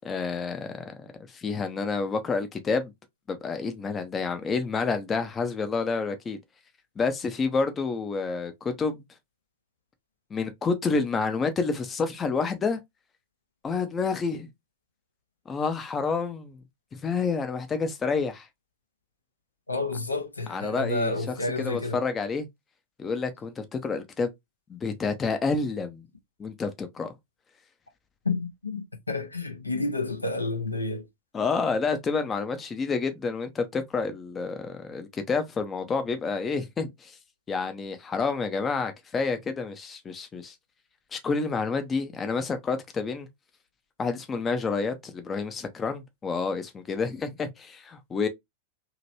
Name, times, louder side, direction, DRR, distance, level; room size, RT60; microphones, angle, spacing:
voice 1, 0.0-2.9 3.3-6.4 7.0-9.0 10.3-12.8 13.6-14.5 15.5-16.6 17.0-18.5 20.5-21.2 21.6-22.5 23.0-24.3 24.7-26.1 26.4-27.1 31.3-37.2 37.5-40.5 41.1-43.3 44.0-48.3, left 4 dB, 20° left, 0.6 m, -29 dB
voice 2, 19.7-22.0 28.2-31.1, left 2 dB, 80° left, 0.7 m, -30 dB
2.9 x 2.8 x 2.6 m
figure-of-eight pair, 90°, 0 cm